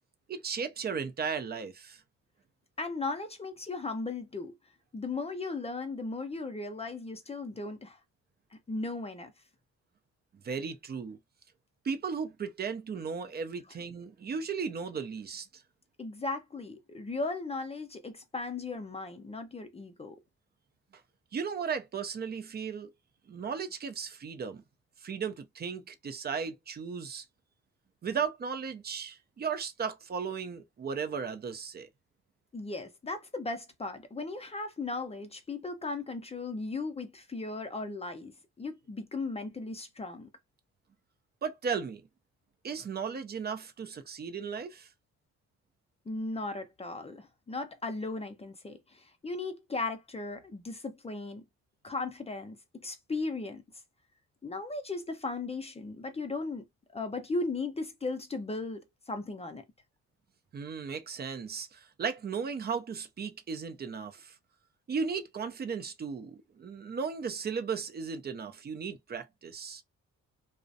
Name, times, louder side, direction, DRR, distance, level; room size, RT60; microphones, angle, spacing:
voice 1, 0.3-2.0 10.4-11.2 11.8-15.5 21.3-22.9 23.3-24.6 25.0-27.2 28.0-31.9 41.4-42.0 42.6-44.9 60.5-64.3 64.9-69.8, right 6 dB, 35° right, 0.5 m, -36 dB
voice 2, 2.8-4.5 4.9-8.0 8.7-9.3 16.0-20.2 32.5-40.3 46.1-51.4 51.8-53.6 54.4-56.6 56.9-59.6, left 3 dB, 20° left, 0.5 m, -37 dB
2.4 x 2.0 x 2.6 m
cardioid pair, 90°, 30 cm